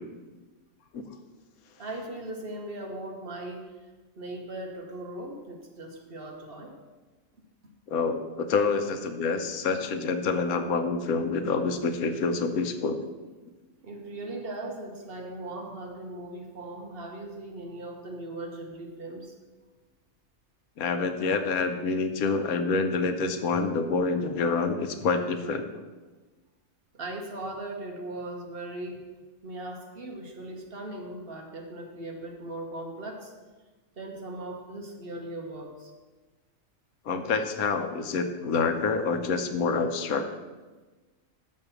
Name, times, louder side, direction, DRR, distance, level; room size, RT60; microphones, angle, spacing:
voice 1, 1.8-3.9 4.2-6.8 13.8-19.3 26.9-29.0 29.4-33.3 34.0-35.9, right 2 dB, 45° right, 2 dB, 1.2 m, -39 dB
voice 2, 7.9-13.0 20.8-25.6 37.1-40.3, left 4 dB, 90° left, 8 dB, 1.2 m, -27 dB
6.4 x 5.5 x 6.9 m, 1.3 s
omnidirectional pair, 1.5 m